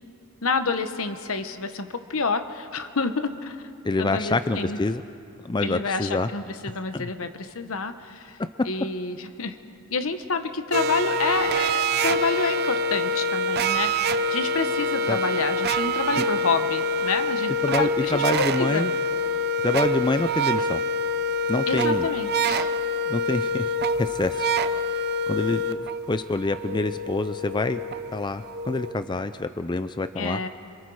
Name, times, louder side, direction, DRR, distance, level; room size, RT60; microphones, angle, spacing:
voice 1, 0.4-3.6 4.0-4.8 5.6-8.4 8.6-9.6 9.9-18.9 21.7-22.7 30.2-30.5, left 4 dB, 65° left, 9 dB, 1.1 m, -28 dB
voice 2, 3.8-5.0 5.4-6.3 6.9-7.1 15.1-15.2 16.2-16.3 17.6-18.9 19.6-20.8 21.5-22.1 23.1-23.7 24.0-24.5 25.3-27.8 28.1-30.5, left 2 dB, 20° left, 10 dB, 0.4 m, -26 dB
sound 1, 10.7-28.9, equal, 45° right, 0.6 m, -26 dB
27.0 x 26.0 x 4.8 m, 2.7 s
head